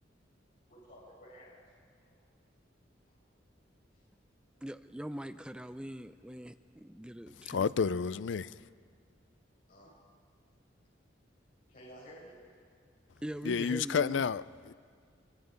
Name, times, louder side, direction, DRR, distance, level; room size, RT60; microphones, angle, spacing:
voice 1, 0.7-1.6 2.0-2.2 3.1-3.2 3.9-4.0 9.7-10.0 11.7-12.5, equal, 50° left, 6.7 m, -53 dB
voice 2, 4.6-8.0 13.2-14.2, equal, 5° right, 0.5 m, -42 dB
voice 3, 7.5-8.5 13.5-14.7, left 6 dB, 75° left, 0.4 m, -30 dB
25.0 x 24.0 x 5.2 m
head